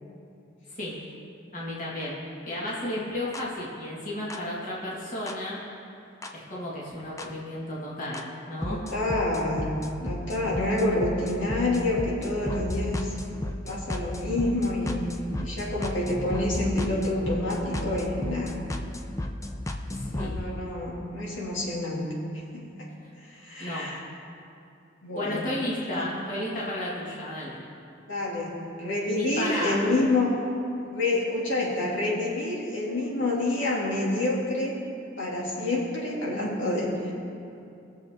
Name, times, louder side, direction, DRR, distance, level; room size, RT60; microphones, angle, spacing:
voice 1, 1.5-2.2 2.5-5.6 6.3-8.2 8.5-8.8 19.9-20.3 23.6-23.9 25.1-27.6 29.2-29.8, left 1 dB, 40° left, -6 dB, 2.0 m, -33 dB
sound 1, 3.3-3.4 4.3-4.4 5.3-5.4 6.2-6.3 7.2-7.3 8.1-8.2 8.6-20.4, left 1 dB, 15° left, 0.5 m, -33 dB
voice 2, 8.6-13.1 13.7-15.0 15.4-18.6 19.9-22.1 22.6-22.7 23.2-24.0 25.0-25.5 25.9-26.1 28.1-30.3 30.8-34.8 35.2-37.1, left 2 dB, 80° left, -5 dB, 2.5 m, -28 dB
20.0 x 7.2 x 3.7 m, 2.7 s
head